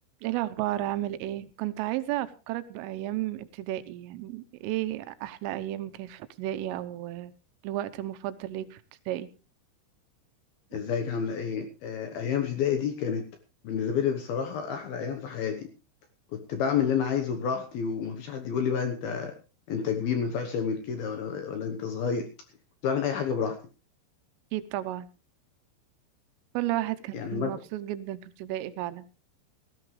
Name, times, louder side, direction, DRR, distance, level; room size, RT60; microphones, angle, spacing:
voice 1, 0.2-7.3 7.6-9.3 24.5-25.1 26.6-29.1, right 14 dB, 90° right, 13 dB, 3.5 m, -33 dB
voice 2, 10.7-13.3 13.6-15.7 16.3-19.3 19.7-22.3 22.8-23.6 27.1-27.6, left 7 dB, 70° left, 6 dB, 2.4 m, -29 dB
18.0 x 14.0 x 3.2 m, 0.32 s
omnidirectional pair, 5.7 m